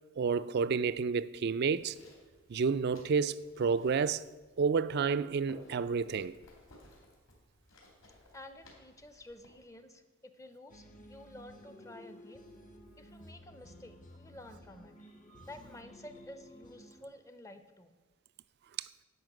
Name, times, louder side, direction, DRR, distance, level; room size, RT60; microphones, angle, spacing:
voice 1, 0.2-2.0 2.5-4.2 4.6-6.4 15.4-15.5 18.8-18.9, right 5 dB, 50° right, 0.4 m, -30 dB
sound 1, 1.6-9.7, left 1 dB, 80° left, 3.2 m, -59 dB
voice 2, 8.3-10.0 10.3-12.4 13.0-14.9 15.4-18.0, left 1 dB, 15° left, 0.6 m, -51 dB
sound 2, 10.7-17.0, equal, 40° left, 0.9 m, -54 dB
11.0 x 5.6 x 7.7 m
head